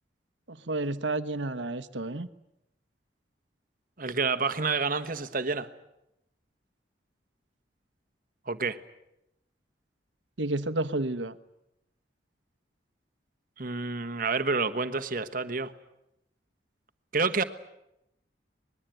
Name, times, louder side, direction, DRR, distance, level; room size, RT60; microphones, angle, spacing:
voice 1, 0.5-2.3 10.4-11.4, right 2 dB, 85° right, 11 dB, 1.2 m, -31 dB
voice 2, 4.0-5.7 8.5-8.8 13.6-15.7 17.1-17.4, right 4 dB, 50° right, 10 dB, 1.3 m, -28 dB
25.0 x 20.5 x 9.2 m, 0.85 s
head